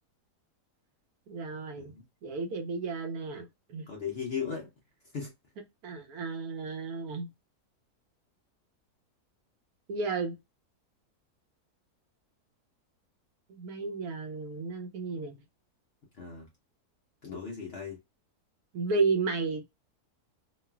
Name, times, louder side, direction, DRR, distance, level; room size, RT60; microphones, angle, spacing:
voice 1, 1.3-1.9 2.2-3.9 5.8-7.3 9.9-10.3 13.5-15.4 18.7-19.7, right 4 dB, 75° right, 1.1 m, -32 dB
voice 2, 3.9-4.7 5.1-5.3 16.2-16.4 17.2-18.0, left 6 dB, 60° left, 0.6 m, -36 dB
3.1 x 2.3 x 2.2 m
omnidirectional pair, 1.7 m